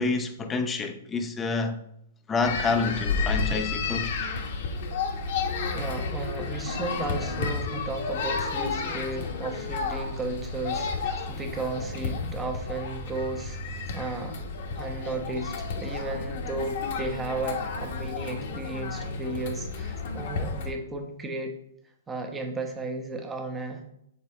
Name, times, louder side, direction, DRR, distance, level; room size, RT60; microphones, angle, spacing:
voice 1, 0.0-1.8 2.3-4.1, left 3 dB, 15° left, 0.6 m, -28 dB
sound 1, 2.4-20.7, left 4 dB, 60° left, 1.0 m, -32 dB
voice 2, 5.7-14.4 14.7-21.6 22.1-23.8, right 2 dB, 15° right, 1.0 m, -34 dB
7.0 x 4.4 x 3.1 m
hypercardioid pair, 125°, 0 cm